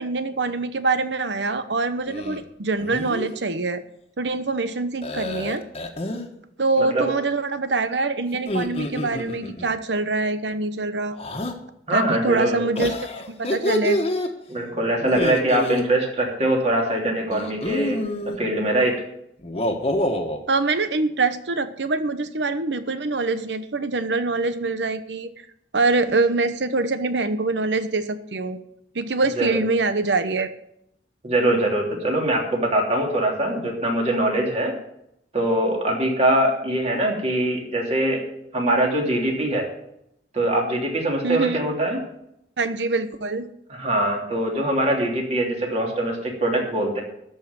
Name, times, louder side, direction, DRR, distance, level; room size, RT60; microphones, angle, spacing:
voice 1, 0.0-3.8 4.2-5.6 6.6-11.2 11.9-12.9 13.3-14.0 20.5-25.3 25.7-28.6 28.9-30.5 41.2-41.6 42.6-43.5, right 3 dB, 80° right, 11 dB, 1.0 m, -24 dB
sound 1, 2.1-2.4 2.8-3.3 5.0-6.3 8.3-9.7 11.2-11.6 12.8-14.3 15.0-15.8 17.3-18.4 19.4-20.4, left 1 dB, 35° left, 1.4 m, -27 dB
voice 2, 6.8-7.1 11.9-12.7 14.5-19.0 29.4-29.6 31.2-34.7 35.3-38.2 38.5-39.7 40.3-42.0 43.7-47.0, right 1 dB, 40° right, 0 dB, 3.2 m, -23 dB
13.5 x 5.7 x 9.6 m, 0.78 s
head